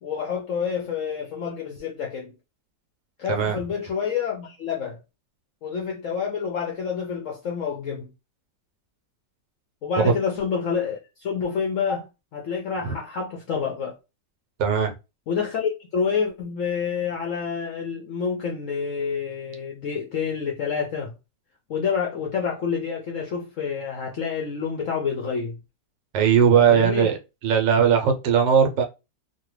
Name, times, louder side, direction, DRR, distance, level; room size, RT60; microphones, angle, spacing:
voice 1, 0.0-2.3 3.2-5.0 5.6-8.1 9.8-12.0 12.3-13.9 15.3-21.1 21.7-25.6 26.7-27.1, left 6 dB, 70° left, 0.7 m, -28 dB
voice 2, 3.3-3.6 10.0-10.1 12.8-12.9 14.6-14.9 26.1-27.2 27.4-28.8, right 7 dB, 85° right, 1.3 m, -19 dB
3.2 x 2.2 x 3.0 m
omnidirectional pair, 1.9 m